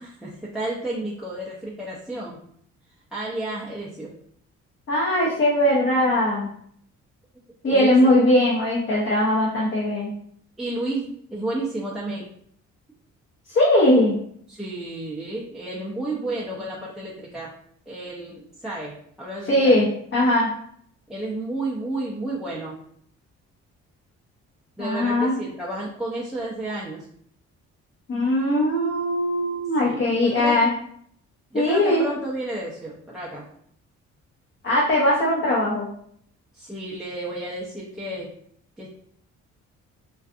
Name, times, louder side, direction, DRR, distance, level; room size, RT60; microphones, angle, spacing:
voice 1, 0.0-2.4 3.1-4.1 7.6-8.1 10.6-12.3 14.5-17.5 17.9-19.8 21.1-22.8 24.8-27.1 29.8-30.6 31.5-33.4 36.5-38.3 38.8-38.9, right 2 dB, ahead, -5 dB, 0.4 m, -31 dB
voice 2, 4.9-6.5 7.6-10.1 13.5-14.2 19.5-20.5 24.8-25.3 28.1-30.7 31.5-32.0 34.6-35.9, left 1 dB, 40° left, -6 dB, 0.8 m, -20 dB
2.5 x 2.4 x 2.4 m, 0.65 s
cardioid pair, 90°, 30 cm